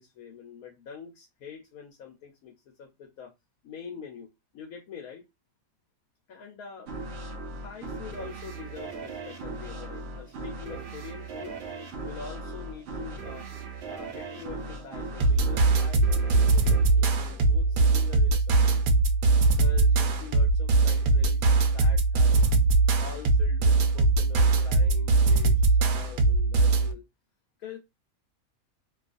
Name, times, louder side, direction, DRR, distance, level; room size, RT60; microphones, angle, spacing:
voice 1, 0.0-2.5 2.8-3.3 3.6-4.3 4.5-5.2 6.3-6.9 7.6-11.6 12.0-13.5 13.9-18.9 19.6-22.5 23.0-27.0 27.6-27.8, left 7 dB, 80° left, 2 dB, 1.1 m, -44 dB
sound 1, 6.9-18.1, right 3 dB, 60° right, 0.8 m, -39 dB
sound 2, 15.2-26.9, right 3 dB, 80° right, 1.0 m, -21 dB
2.7 x 2.4 x 2.4 m, 0.22 s
omnidirectional pair, 1.5 m